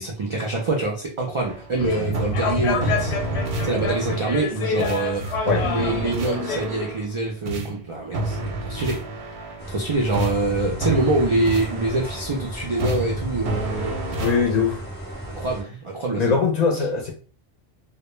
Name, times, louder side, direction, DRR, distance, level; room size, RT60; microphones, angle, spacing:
voice 1, 0.0-3.2 3.6-9.0 9.7-14.2 15.2-16.4, right 2 dB, 50° right, 0.3 m, -25 dB
sound 1, 1.4-1.7 2.1-4.5 4.8-7.1 7.5-9.7 10.1-12.4 12.8-14.5, right 2 dB, 85° right, 0.8 m, -29 dB
sound 2, 1.7-6.6, left 3 dB, 90° left, 0.9 m, -27 dB
sound 3, 9.6-15.6, right 1 dB, 10° left, 0.7 m, -35 dB
voice 2, 14.2-14.8 16.2-17.1, left 5 dB, 50° left, 0.6 m, -21 dB
2.1 x 2.1 x 3.0 m
omnidirectional pair, 1.1 m